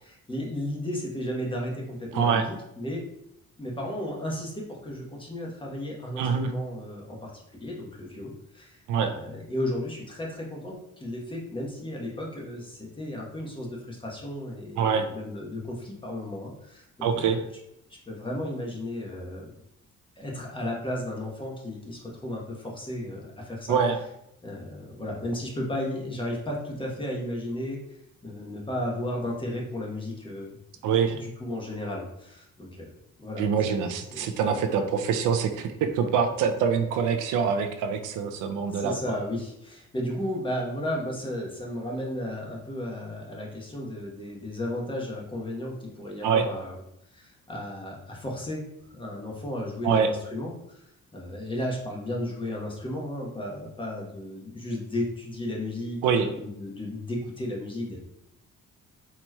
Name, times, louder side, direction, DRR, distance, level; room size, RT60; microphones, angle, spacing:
voice 1, 0.0-3.1 3.6-17.5 18.1-19.5 20.2-23.8 24.4-27.8 28.2-30.6 31.2-32.9 33.2-33.9 34.1-34.3 34.7-34.8 38.7-46.8 47.1-48.6 48.9-58.0, left 1 dB, 15° left, -2 dB, 1.0 m, -34 dB
voice 2, 2.1-2.4 6.2-6.5 8.9-9.1 14.8-15.1 17.0-17.4 23.7-24.0 30.8-31.2 33.4-39.2 46.2-46.4 49.8-50.1 56.0-56.3, right 6 dB, 85° right, 6 dB, 0.5 m, -25 dB
4.2 x 2.9 x 2.3 m, 0.80 s
cardioid pair, 90°, 30 cm